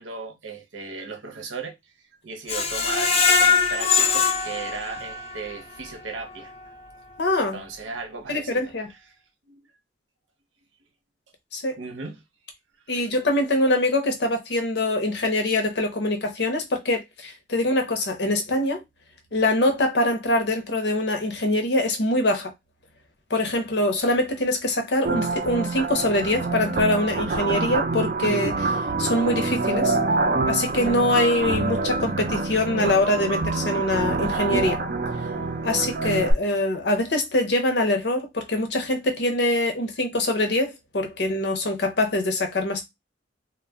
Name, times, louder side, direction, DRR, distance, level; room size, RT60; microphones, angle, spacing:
voice 1, 0.0-1.8 2.2-6.5 7.5-8.7 9.5-9.6 11.8-12.2 13.0-13.1 35.2-35.4 36.2-36.3, right 4 dB, 85° right, 0.7 m, -36 dB
Screech, 2.5-5.5 5.9-6.0 6.4-6.5, left 5 dB, 30° left, 0.4 m, -21 dB
voice 2, 7.2-7.6 8.3-8.9 11.5-11.8 12.9-18.8 19.3-22.5 23.3-30.0 30.5-34.8 35.6-42.8, left 1 dB, 60° left, 0.7 m, -24 dB
sound 1, 25.1-36.3, right 3 dB, 50° right, 0.4 m, -26 dB
2.2 x 2.1 x 3.4 m
head